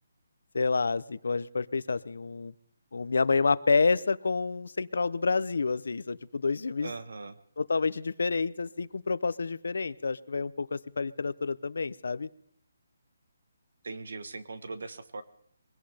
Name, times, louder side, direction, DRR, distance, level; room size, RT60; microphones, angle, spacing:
voice 1, 0.5-2.5 2.9-6.9 7.6-12.3, left 4 dB, 75° left, 18 dB, 0.6 m, -28 dB
voice 2, 6.8-7.4 13.8-15.2, right 3 dB, 70° right, 12 dB, 1.3 m, -40 dB
22.5 x 17.0 x 3.4 m, 0.72 s
hypercardioid pair, 175°, 0 cm